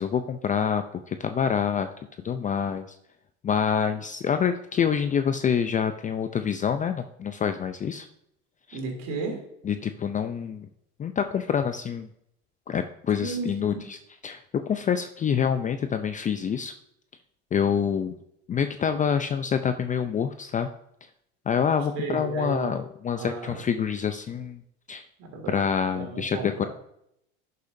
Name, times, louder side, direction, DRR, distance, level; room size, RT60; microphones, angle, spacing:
voice 1, 0.0-1.9 2.2-3.0 3.4-8.1 8.7-8.8 9.6-10.7 11.0-12.1 12.7-14.0 14.2-16.7 17.5-18.2 18.5-20.7 21.5-24.6 24.9-25.0 25.5-26.7, left 7 dB, 25° left, 9 dB, 0.5 m, -26 dB
voice 2, 8.7-9.4 13.2-13.7 21.9-22.8 23.2-23.6 25.2-25.6 25.9-26.7, right 4 dB, 60° right, 1 dB, 3.1 m, -33 dB
11.0 x 6.8 x 2.7 m, 0.78 s
supercardioid pair, 100°, 31 cm